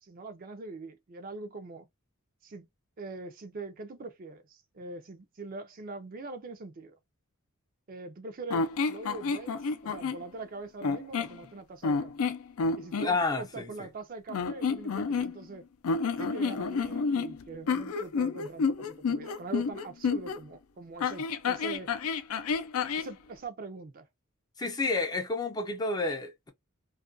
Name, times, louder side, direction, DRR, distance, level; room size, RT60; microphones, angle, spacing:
voice 1, 0.0-1.9 2.4-2.6 3.0-7.0 7.9-12.3 12.8-15.7 16.2-21.9 23.0-24.1, right 3 dB, 40° right, 0.4 m, -43 dB
sound 1, 8.5-10.2 10.8-11.4 11.8-13.1 14.3-15.5 15.8-20.4 21.0-23.1, left 5 dB, 80° left, 0.4 m, -30 dB
voice 2, 13.0-13.7 24.6-26.5, left 3 dB, 20° left, 0.4 m, -30 dB
2.4 x 2.2 x 2.4 m
head